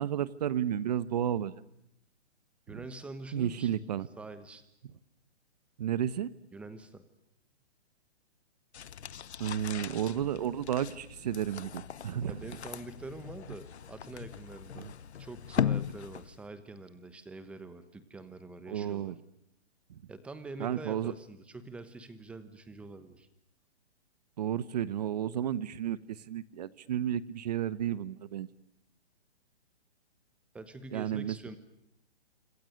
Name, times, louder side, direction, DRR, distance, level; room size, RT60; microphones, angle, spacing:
voice 1, 0.0-1.5 2.7-2.8 3.3-4.1 5.8-6.3 9.4-12.3 14.8-14.9 18.7-19.1 20.6-21.1 24.4-28.5 30.9-31.4, right 10 dB, 40° right, 18 dB, 1.2 m, -32 dB
voice 2, 2.7-3.8 4.2-4.6 6.5-7.1 12.3-14.9 15.2-19.1 20.1-23.3 30.5-31.6, right 3 dB, 5° right, 12 dB, 1.1 m, -45 dB
sound 1, 8.7-16.5, left 9 dB, 75° left, 1.0 m, -38 dB
27.5 x 25.5 x 6.6 m, 0.77 s
hypercardioid pair, 165°, 33 cm